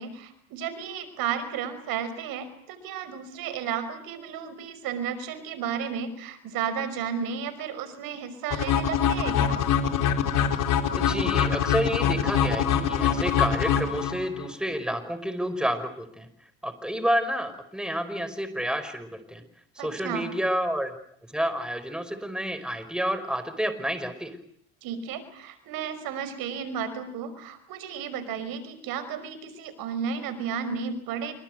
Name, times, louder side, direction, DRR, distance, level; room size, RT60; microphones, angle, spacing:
voice 1, 0.0-9.6 19.8-20.3 24.8-31.3, right 7 dB, 70° right, 11 dB, 5.7 m, -33 dB
sound 1, 8.5-14.5, left 8 dB, 60° left, 4.4 m, -24 dB
voice 2, 10.9-16.3 16.6-19.4 19.8-20.9 21.3-24.4, equal, ahead, 11 dB, 5.2 m, -29 dB
27.0 x 25.0 x 8.0 m, 0.66 s
supercardioid pair, 90°, 36 cm